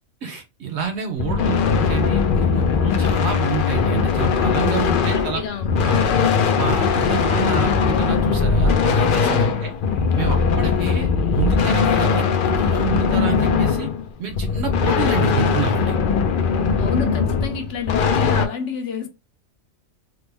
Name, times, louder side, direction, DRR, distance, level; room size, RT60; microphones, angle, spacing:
voice 1, 0.2-5.4 5.8-6.0 6.5-9.7 10.1-13.9 14.2-16.0, right 7 dB, 60° right, 0.8 m, -28 dB
sound 1, 1.2-18.5, left 5 dB, 90° left, 0.4 m, -20 dB
voice 2, 4.7-6.0 9.2-9.6 16.8-19.1, left 6 dB, 65° left, 0.9 m, -30 dB
3.4 x 2.1 x 3.2 m
omnidirectional pair, 1.5 m